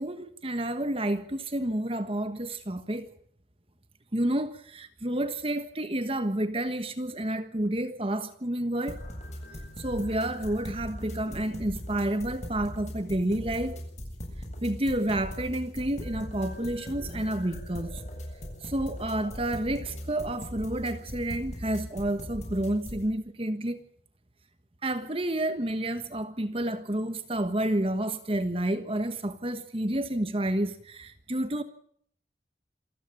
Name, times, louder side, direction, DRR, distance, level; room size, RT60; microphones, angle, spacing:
voice 1, 0.0-3.1 4.1-9.0 9.8-13.8 14.6-18.0 18.6-23.8 24.8-31.6, right 1 dB, 30° right, 1.4 m, -30 dB
sound 1, 8.9-23.0, equal, 40° left, 7.9 m, -39 dB
27.0 x 14.5 x 9.0 m
head